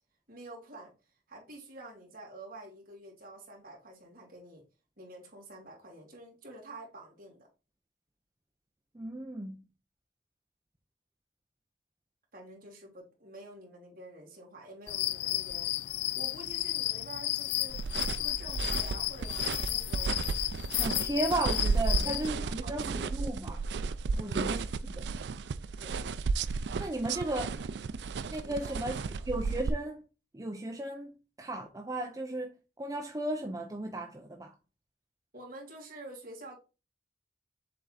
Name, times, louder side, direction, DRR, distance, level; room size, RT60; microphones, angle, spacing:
voice 1, 0.3-0.9 1.3-4.6 5.0-7.5 12.3-17.8 18.1-20.3 20.8-21.2 21.8-23.3 24.1-24.5 25.8-26.0 27.1-27.6 28.4-29.3 35.3-36.6, right 1 dB, 55° right, 2.9 m, -49 dB
voice 2, 8.9-9.6 20.8-23.6 24.2-25.1 26.8-27.5 28.3-29.0 29.3-30.0 30.3-34.5, right 1 dB, 20° right, 0.6 m, -35 dB
sound 1, 14.9-22.3, left 16 dB, 65° left, 0.3 m, -33 dB
sound 2, 17.7-29.7, right 4 dB, 75° right, 0.4 m, -33 dB
7.5 x 3.5 x 4.0 m
head